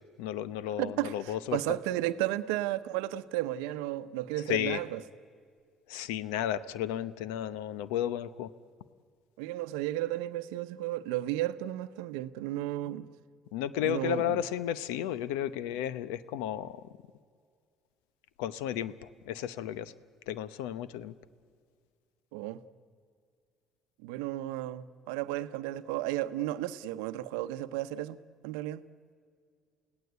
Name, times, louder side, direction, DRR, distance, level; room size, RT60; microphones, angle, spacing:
voice 1, 0.2-1.6 4.5-4.8 5.9-8.5 13.5-16.8 18.4-19.9 20.3-21.1, left 11 dB, 90° left, 0.8 m, -33 dB
voice 2, 0.8-5.0 9.4-13.1 13.8-14.4 22.3-22.6 24.0-28.2 28.4-28.8, right 15 dB, 90° right, 0.8 m, -33 dB
29.0 x 17.5 x 8.1 m
supercardioid pair, 80°, 0 cm